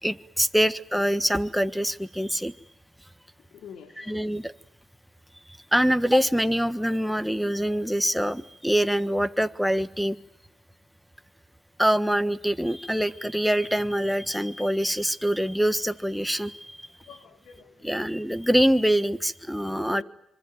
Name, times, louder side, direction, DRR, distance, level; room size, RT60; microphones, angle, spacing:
voice 1, 0.0-2.5 4.0-4.5 5.7-10.2 11.8-16.8 17.8-20.0, equal, ahead, 11 dB, 1.4 m, -24 dB
voice 2, 3.5-4.2 17.0-18.1 19.9-20.0, left 7 dB, 70° left, 6 dB, 3.6 m, -47 dB
26.0 x 24.5 x 9.2 m, 0.76 s
cardioid pair, 90°, 0 cm